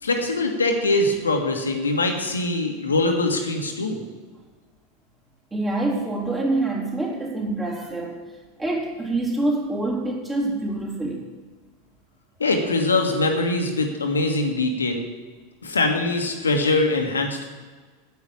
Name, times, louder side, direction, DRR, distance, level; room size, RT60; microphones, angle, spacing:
voice 1, 0.0-4.0 12.4-15.0 15.6-17.5, left 2 dB, 80° left, 3 dB, 1.6 m, -22 dB
voice 2, 5.5-8.2 8.6-11.2, right 2 dB, 15° right, -4 dB, 3.6 m, -26 dB
9.5 x 8.1 x 8.5 m, 1.4 s
figure-of-eight pair, 85°, 0 cm